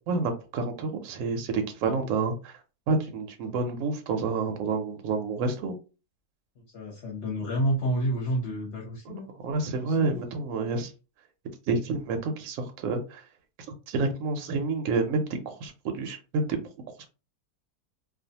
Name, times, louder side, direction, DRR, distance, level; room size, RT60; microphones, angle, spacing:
voice 1, 0.1-2.5 2.9-5.8 9.1-9.2 9.4-10.9 11.7-13.2 13.9-16.6, right 3 dB, 70° right, 5 dB, 0.8 m, -29 dB
voice 2, 6.6-9.3 9.7-10.2, right 1 dB, 55° left, -2 dB, 0.9 m, -30 dB
2.5 x 2.3 x 2.7 m, 0.32 s
omnidirectional pair, 1.7 m